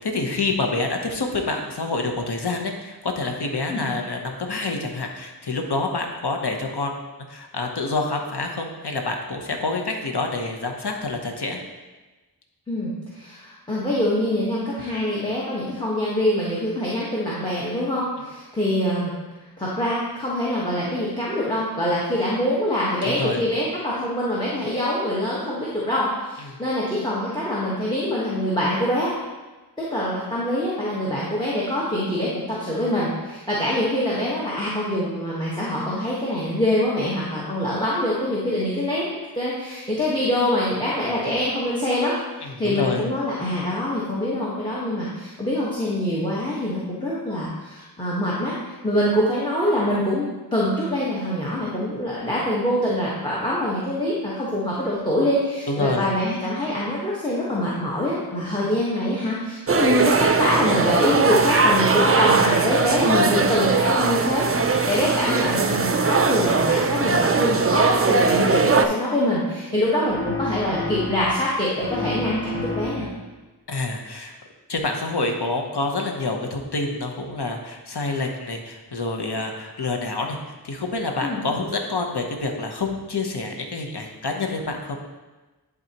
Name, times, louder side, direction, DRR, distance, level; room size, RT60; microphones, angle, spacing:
voice 1, 0.0-7.0 7.3-11.6 23.0-23.4 26.4-26.6 42.4-43.1 55.7-56.1 73.7-74.3 74.7-80.4 80.6-85.0, left 3 dB, 75° left, 3 dB, 0.9 m, -27 dB
voice 2, 12.7-19.1 19.6-29.1 29.8-39.0 39.3-42.1 42.4-73.1 81.2-81.4, left 1 dB, 10° left, -7 dB, 1.2 m, -24 dB
sound 1, 59.7-68.9, right 4 dB, 35° right, 0.4 m, -20 dB
sound 2, 70.1-71.5 71.8-73.3, left 3 dB, 35° left, 1.3 m, -31 dB
11.0 x 4.0 x 2.9 m, 1.2 s
wide cardioid pair, 55°, 40 cm